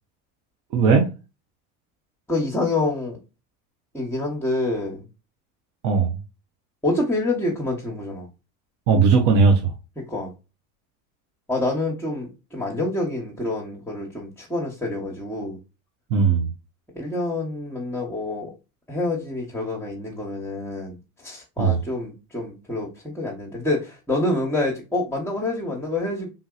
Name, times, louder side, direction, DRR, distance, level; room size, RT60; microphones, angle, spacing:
voice 1, 0.7-1.1 5.8-6.2 8.9-9.7 16.1-16.5 21.6-21.8, right 5 dB, 65° right, 0.9 m, -18 dB
voice 2, 2.3-3.2 3.9-5.0 6.8-8.3 10.0-10.3 11.5-15.6 16.9-18.5 18.9-26.3, left 2 dB, 5° left, 1.0 m, -27 dB
3.7 x 2.6 x 2.4 m
hypercardioid pair, 90°, 43 cm